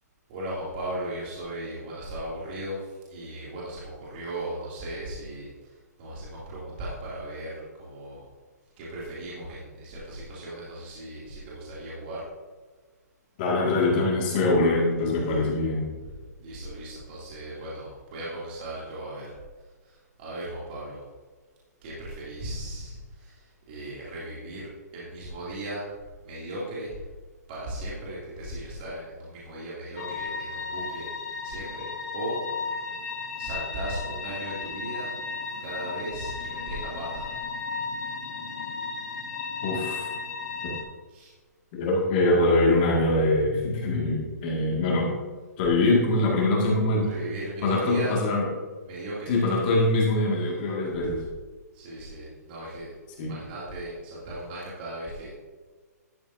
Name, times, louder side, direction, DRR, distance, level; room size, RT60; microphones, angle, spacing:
voice 1, 0.3-2.8 3.1-5.5 6.0-8.2 8.8-12.2 16.4-19.3 19.8-21.0 21.8-25.9 26.2-27.0 27.5-31.1 31.4-32.4 33.4-35.1 35.6-37.4 41.1-41.3 47.1-48.1 48.8-49.3 51.7-52.9 53.2-55.3, right 1 dB, 35° right, -7 dB, 2.5 m, -37 dB
voice 2, 13.4-15.9 39.6-40.1 40.6-40.8 41.7-45.1 45.6-47.1 47.6-48.5 49.3-51.2 53.2-53.3, left 2 dB, 30° left, -3 dB, 1.9 m, -23 dB
sound 1, 30.0-40.8, left 4 dB, 70° left, 2.0 m, -34 dB
11.5 x 8.7 x 2.7 m, 1.4 s
hypercardioid pair, 160°, 9 cm